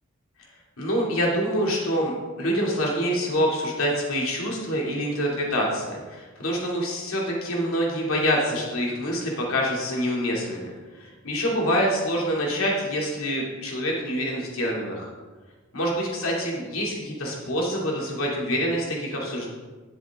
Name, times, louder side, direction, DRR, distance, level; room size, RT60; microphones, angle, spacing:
voice 1, 0.8-15.1 15.7-19.5, equal, 85° left, -2 dB, 2.6 m, -26 dB
11.0 x 7.7 x 3.6 m, 1.3 s
head